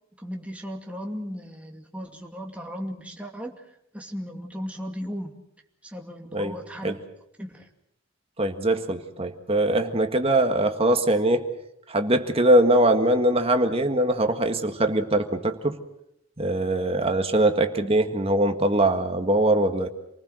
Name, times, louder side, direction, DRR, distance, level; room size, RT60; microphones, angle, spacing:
voice 1, 0.2-3.7 3.9-5.4 5.8-7.0 7.4-7.7, equal, 5° right, 2 dB, 2.4 m, -36 dB
voice 2, 8.4-11.5 11.9-15.7 16.4-19.9, right 1 dB, 30° right, 7 dB, 1.8 m, -22 dB
28.0 x 19.5 x 6.4 m, 0.80 s
head